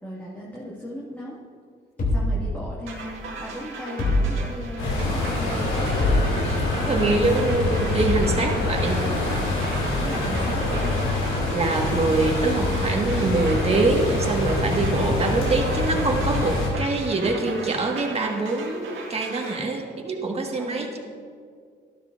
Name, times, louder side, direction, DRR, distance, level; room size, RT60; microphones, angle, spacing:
voice 1, 0.0-1.4 2.1-5.9 9.9-11.0 20.5-21.0, equal, 10° left, -7 dB, 2.2 m, -36 dB
sound 1, 2.0-3.1 4.0-4.9 6.0-6.7 8.0-8.5, left 1 dB, 45° left, 3.0 m, -25 dB
sound 2, 2.9-19.6, right 3 dB, 80° right, 1.8 m, -38 dB
sound 3, 4.8-16.7, left 2 dB, 85° left, 2.5 m, -25 dB
voice 2, 6.9-9.0 9.8-9.9 11.5-21.0, right 2 dB, 30° right, 0 dB, 1.8 m, -24 dB
13.0 x 12.5 x 2.6 m, 2.1 s
cardioid pair, 90°, 20 cm